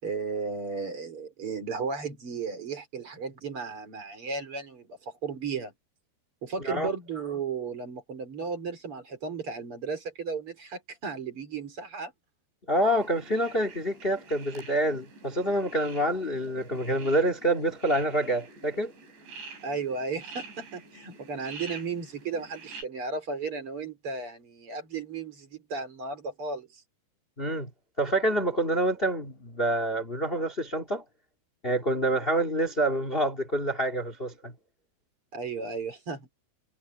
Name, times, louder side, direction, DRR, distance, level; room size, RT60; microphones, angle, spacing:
voice 1, 0.0-5.7 6.4-12.1 19.6-26.8 35.3-36.3, right 4 dB, 35° right, 4.1 m, -35 dB
voice 2, 12.7-18.9 27.4-27.7 28.0-31.0 31.6-34.5, right 1 dB, 85° left, 0.5 m, -27 dB
sound 1, 13.0-22.8, right 4 dB, 90° right, 9.4 m, -47 dB
omnidirectional pair, 4.9 m